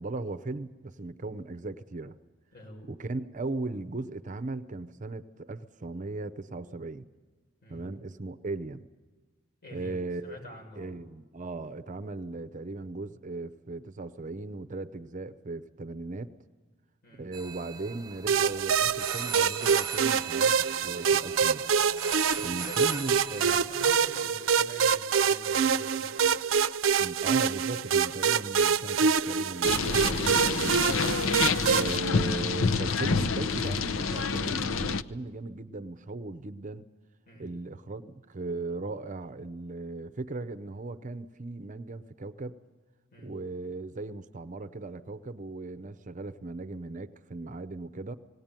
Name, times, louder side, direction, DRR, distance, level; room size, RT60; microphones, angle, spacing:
voice 1, 0.0-2.2 2.9-7.1 7.7-8.9 9.7-10.4 10.8-16.3 17.2-21.6 22.4-23.6 27.0-30.9 31.7-36.9 37.4-42.5 43.2-48.1, right 3 dB, 40° right, 11 dB, 0.7 m, -37 dB
voice 2, 2.5-2.9 7.6-7.9 9.6-10.0 10.2-11.0 17.0-17.3 22.3-26.2 28.4-28.5 37.3-37.5 43.1-43.4, left 1 dB, 50° left, 0 dB, 6.9 m, -47 dB
sound 1, 17.3-23.5, right 6 dB, 20° right, 1.1 m, -39 dB
sound 2, 18.3-32.0, right 6 dB, 80° right, 0.6 m, -26 dB
sound 3, 29.6-35.0, left 4 dB, 90° left, 0.7 m, -28 dB
19.0 x 18.5 x 8.9 m, 1.3 s
head